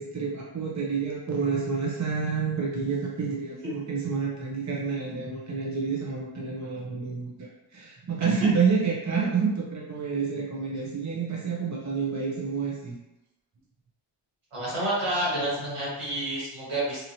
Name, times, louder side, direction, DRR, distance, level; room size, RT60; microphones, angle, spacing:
voice 1, 0.0-13.0, right 5 dB, 35° right, -3 dB, 0.7 m, -29 dB
voice 2, 14.5-17.0, right 1 dB, 85° right, -8 dB, 1.5 m, -29 dB
2.9 x 2.8 x 2.7 m, 0.93 s
wide cardioid pair, 50°, 50 cm